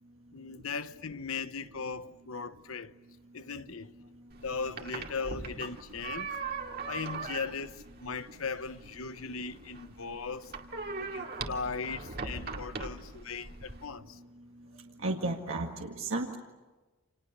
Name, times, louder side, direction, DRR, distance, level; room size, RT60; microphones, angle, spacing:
voice 1, 0.3-2.9 3.3-3.9 4.4-6.3 6.9-10.5 11.0-14.2, left 5 dB, 80° left, 1.0 m, -38 dB
sound 1, 4.3-13.8, right 4 dB, 45° right, 2.2 m, -40 dB
voice 2, 15.0-16.3, right 2 dB, 70° right, 2.0 m, -33 dB
29.5 x 28.0 x 6.7 m
head